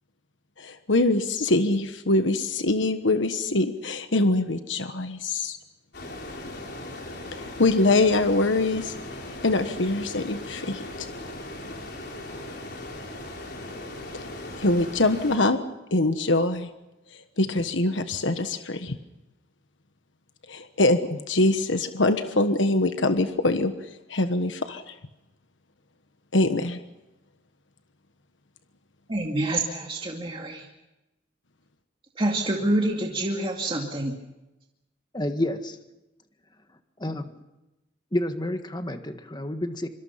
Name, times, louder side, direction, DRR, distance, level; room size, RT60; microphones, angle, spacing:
voice 1, 0.6-5.6 7.3-8.9 9.4-11.1 14.6-15.6 15.9-16.7 17.4-19.0 20.5-23.7 24.1-24.9 26.3-26.8, left 2 dB, 85° left, 8 dB, 1.4 m, -23 dB
sound 1, 5.9-15.4, left 1 dB, 60° left, 4.7 m, -38 dB
voice 2, 29.1-30.7 32.2-34.2, right 1 dB, 30° right, 0 dB, 2.3 m, -27 dB
voice 3, 35.1-35.8 37.0-37.3 38.1-39.9, left 1 dB, 25° left, 7 dB, 1.7 m, -29 dB
25.5 x 25.0 x 5.8 m, 0.98 s
head